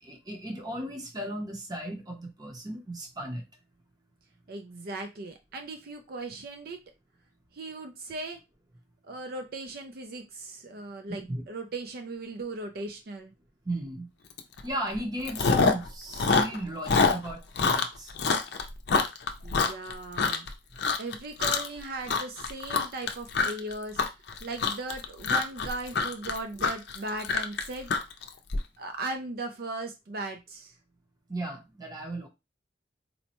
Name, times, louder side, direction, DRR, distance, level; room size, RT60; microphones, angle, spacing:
voice 1, 0.0-3.4 11.3-11.5 13.6-14.1 14.6-18.1 31.3-32.3, right 1 dB, 20° right, 2 dB, 0.7 m, -35 dB
voice 2, 4.5-6.8 7.5-8.4 9.0-13.3 19.4-20.5 21.0-24.0 24.4-27.9 28.8-30.7, right 2 dB, 55° right, 5 dB, 0.4 m, -38 dB
Chewing mastication, 14.4-14.6 14.9-15.9 16.1-20.5 20.8-21.2 21.4-21.8 22.1-28.6, left 4 dB, 65° left, 0.5 m, -26 dB
4.1 x 2.2 x 2.9 m, 0.24 s
head